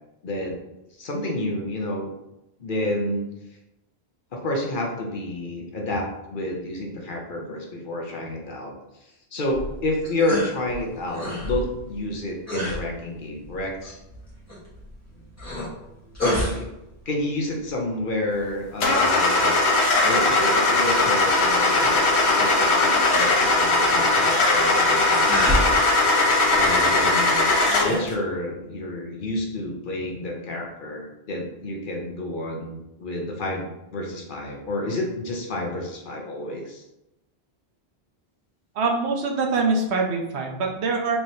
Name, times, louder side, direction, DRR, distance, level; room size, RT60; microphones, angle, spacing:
voice 1, 0.2-0.5 0.9-2.1 2.6-3.3 4.3-8.7 9.0-14.0 16.4-16.7 17.1-19.5 20.0-27.5 27.8-36.8, left 1 dB, 55° left, 0 dB, 0.9 m, -30 dB
sound 1, 9.4-28.1, equal, 15° left, 1.5 m, -33 dB
Car / Engine starting, 18.8-28.1, left 2 dB, 80° left, 1.1 m, -19 dB
voice 2, 38.8-41.2, right 3 dB, 85° right, 2 dB, 1.0 m, -24 dB
4.4 x 3.2 x 2.8 m, 0.92 s
omnidirectional pair, 1.1 m